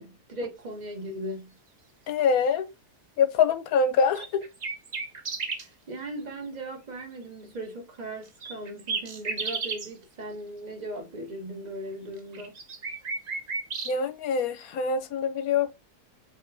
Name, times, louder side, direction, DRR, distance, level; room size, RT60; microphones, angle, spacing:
voice 1, 0.0-1.6 5.6-12.5, right 1 dB, 30° right, 1.3 m, -38 dB
voice 2, 2.1-2.7 3.2-4.5 13.9-15.7, left 5 dB, 70° left, 1.0 m, -24 dB
sound 1, 4.1-5.7 8.4-9.9 12.2-13.9, right 4 dB, 45° right, 0.5 m, -33 dB
4.9 x 3.1 x 2.5 m
omnidirectional pair, 1.7 m